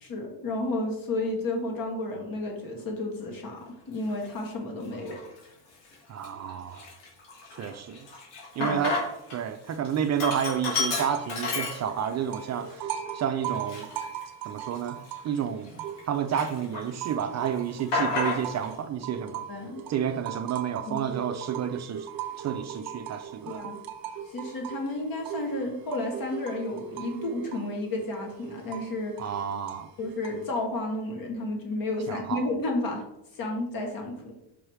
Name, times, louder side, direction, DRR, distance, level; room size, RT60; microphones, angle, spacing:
voice 1, 0.0-5.2 8.6-8.8 19.5-19.8 20.9-21.2 23.5-23.8 24.3-29.2 30.0-33.0 33.3-34.4, left 2 dB, 50° left, 1 dB, 2.0 m, -32 dB
Sink (filling or washing), 4.1-4.3 4.9-5.5 5.8-5.9 6.2-9.4 9.7-12.2 12.7-12.8 13.5-16.0 16.3-17.1 17.4-18.7, left 3 dB, 75° left, 2.8 m, -32 dB
voice 2, 6.1-6.9 7.5-8.1 8.6-9.0 9.3-13.9 14.5-19.5 19.9-22.1 22.4-23.7 29.2-29.9 32.1-32.5, right 8 dB, 40° right, 8 dB, 0.5 m, -30 dB
sound 1, 10.8-11.4 11.7-16.3 16.7-30.6, right 9 dB, 55° right, 1.3 m, -39 dB
5.6 x 4.8 x 4.8 m, 0.84 s
cardioid pair, 120°, 43 cm